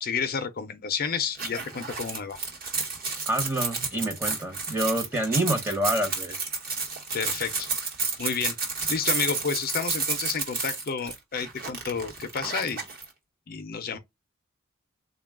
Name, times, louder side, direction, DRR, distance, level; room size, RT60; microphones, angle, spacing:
voice 1, 0.0-2.4 7.1-7.7 8.2-8.5 8.9-12.8 13.5-14.0, left 6 dB, 45° left, 0.5 m, -30 dB
sound 1, 1.4-13.1, right 4 dB, 40° right, 1.1 m, -31 dB
voice 2, 3.3-6.3, right 1 dB, 10° right, 0.8 m, -27 dB
3.9 x 2.2 x 3.5 m
head